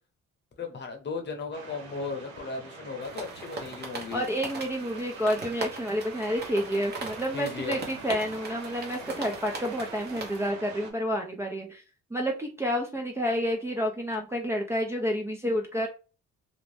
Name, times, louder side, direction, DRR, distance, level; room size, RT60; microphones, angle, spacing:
voice 1, 0.6-4.2 7.3-7.8, left 4 dB, 35° left, 0.9 m, -36 dB
sound 1, 1.5-10.9, right 4 dB, 85° right, 0.9 m, -44 dB
sound 2, 3.0-10.5, right 3 dB, 35° right, 0.9 m, -40 dB
voice 2, 4.1-11.8 12.1-15.9, equal, 10° right, 0.4 m, -29 dB
2.6 x 2.0 x 3.2 m
cardioid pair, 100°, 30 cm